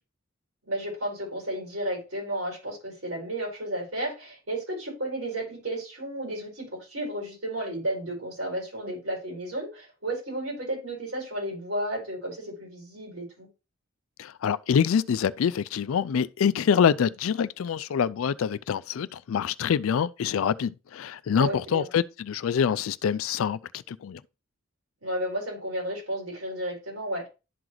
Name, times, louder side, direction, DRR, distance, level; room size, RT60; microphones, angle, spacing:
voice 1, 0.6-13.5 21.4-21.9 25.0-27.3, right 1 dB, 70° right, 4.5 m, -33 dB
voice 2, 14.2-23.6 23.9-24.2, left 7 dB, 75° left, 0.4 m, -25 dB
11.5 x 3.9 x 3.0 m
head